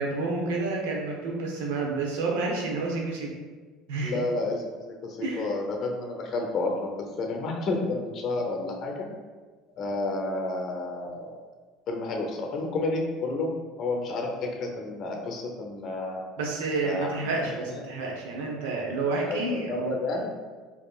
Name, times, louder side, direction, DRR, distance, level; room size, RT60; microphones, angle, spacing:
voice 1, 0.0-3.3 3.9-4.2 5.2-5.5 16.4-19.9, right 3 dB, 80° right, -1 dB, 0.8 m, -29 dB
voice 2, 4.0-6.9 7.2-9.1 9.8-11.3 11.9-13.5 13.8-16.2 16.8-17.1 17.7-17.8 19.3-19.4 19.7-20.3, left 2 dB, 50° left, 2 dB, 0.7 m, -30 dB
4.4 x 2.9 x 2.4 m, 1.4 s
hypercardioid pair, 80°, 0 cm